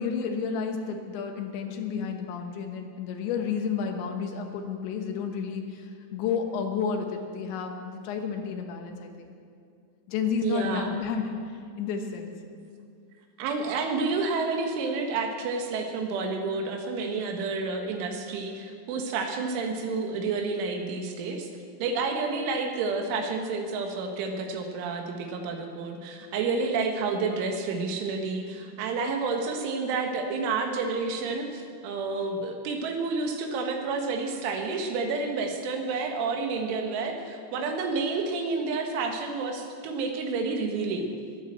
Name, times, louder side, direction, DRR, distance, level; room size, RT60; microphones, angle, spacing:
voice 1, 0.0-9.3 10.1-12.3, left 6 dB, 75° left, 4 dB, 3.5 m, -31 dB
voice 2, 10.4-10.9 13.4-21.5 21.8-41.1, right 4 dB, 90° right, 4 dB, 4.0 m, -30 dB
21.5 x 8.9 x 7.5 m, 2.3 s
omnidirectional pair, 5.4 m